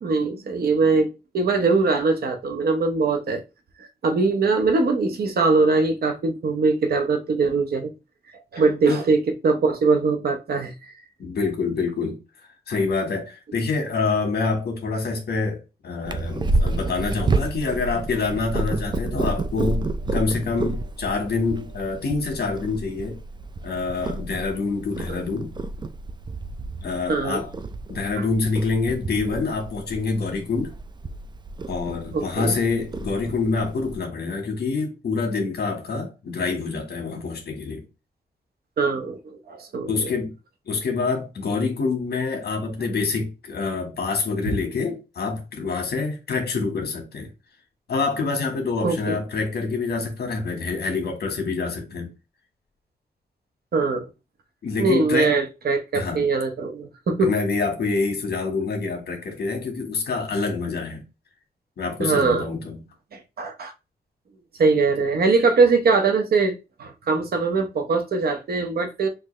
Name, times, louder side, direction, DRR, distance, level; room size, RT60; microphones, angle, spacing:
voice 1, 0.0-3.4 3.8-7.9 8.5-10.9 25.1-25.2 27.1-27.4 28.2-28.3 32.1-32.5 38.8-39.2 39.5-40.1 48.8-49.2 53.7-54.1 54.8-57.3 62.0-62.5 63.1-63.7 64.6-69.1, right 4 dB, 65° right, 0.9 m, -22 dB
voice 2, 11.2-12.2 12.7-19.8 20.1-23.2 23.6-25.5 26.8-27.5 27.9-30.7 31.7-37.8 39.9-40.3 40.7-47.3 47.9-52.1 54.6-55.3 55.9-56.2 57.2-61.0 61.8-62.8, left 4 dB, 75° left, 1.5 m, -26 dB
Purr, 16.0-34.0, right 2 dB, 25° right, 0.4 m, -30 dB
5.8 x 2.7 x 3.2 m
wide cardioid pair, 135°, 17 cm